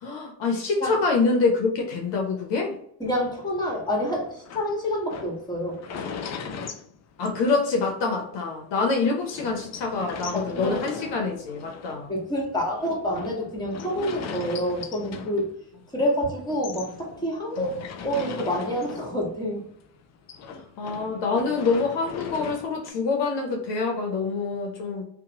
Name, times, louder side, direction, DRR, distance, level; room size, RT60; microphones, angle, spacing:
voice 1, 0.0-2.8 7.2-12.1 17.6-17.7 20.8-25.0, left 4 dB, 65° left, 2 dB, 0.7 m, -26 dB
sound 1, 3.0-8.0 8.4-8.5 8.7-8.8 9.3-16.1 16.4-19.5 19.7-22.9, left 6 dB, 40° left, 0.4 m, -39 dB
voice 2, 3.0-5.8 10.3-10.8 12.1-15.5 15.9-17.7 18.0-19.7, equal, 10° left, -2 dB, 1.3 m, -28 dB
2.8 x 2.2 x 2.8 m, 0.67 s
supercardioid pair, 65°, 45 cm